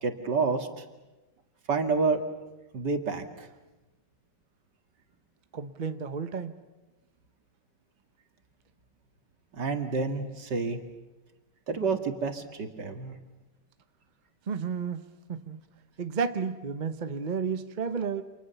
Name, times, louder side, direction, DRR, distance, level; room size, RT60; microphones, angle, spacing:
voice 1, 0.0-0.8 1.7-2.2 2.7-3.5 9.5-10.8 11.7-13.1, right 4 dB, 75° right, 6 dB, 2.7 m, -29 dB
voice 2, 5.5-6.5 14.5-15.0 15.3-15.6 16.0-18.2, right 5 dB, 30° right, 9 dB, 1.0 m, -32 dB
30.0 x 27.0 x 7.0 m, 1.1 s
omnidirectional pair, 1.9 m